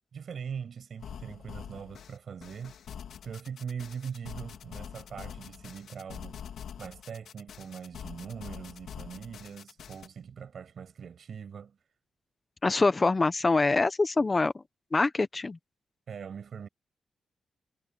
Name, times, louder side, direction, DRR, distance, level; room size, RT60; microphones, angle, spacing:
voice 1, 0.1-2.9 3.2-6.4 6.8-11.8 16.1-16.7, right 7 dB, 60° right, 7.3 m, -41 dB
sound 1, 1.0-10.1, left 8 dB, 85° left, 3.3 m, -45 dB
voice 2, 12.6-14.5 14.9-15.6, left 3 dB, 25° left, 0.9 m, -24 dB
wide cardioid pair, 115°, 0 cm